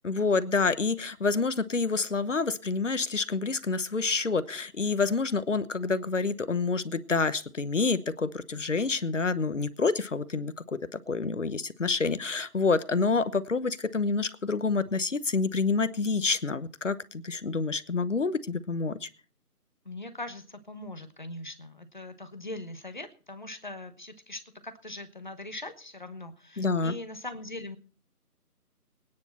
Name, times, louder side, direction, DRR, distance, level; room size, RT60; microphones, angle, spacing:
voice 1, 0.0-19.1 26.6-26.9, left 4 dB, 50° left, 14 dB, 1.1 m, -28 dB
voice 2, 19.8-27.8, left 2 dB, 30° left, 10 dB, 1.2 m, -41 dB
22.5 x 9.9 x 4.3 m, 0.41 s
figure-of-eight pair, 170°, 47 cm